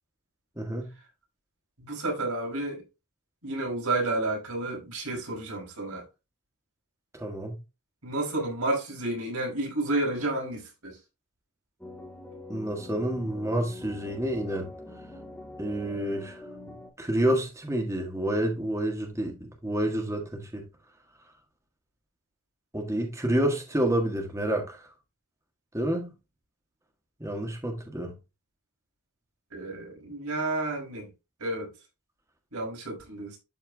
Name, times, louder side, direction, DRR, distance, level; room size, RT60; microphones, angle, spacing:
voice 1, 0.6-0.9 7.1-7.5 12.5-14.7 15.6-16.4 17.0-20.6 22.7-24.9 25.7-26.1 27.2-28.1, right 1 dB, 15° right, 1.5 m, -29 dB
voice 2, 1.8-2.8 3.4-6.0 8.0-11.0 29.5-31.1 31.4-31.7 32.5-33.4, right 2 dB, 90° right, 5.0 m, -31 dB
sound 1, 11.8-16.9, left 2 dB, 5° left, 1.9 m, -44 dB
12.5 x 4.5 x 2.3 m
head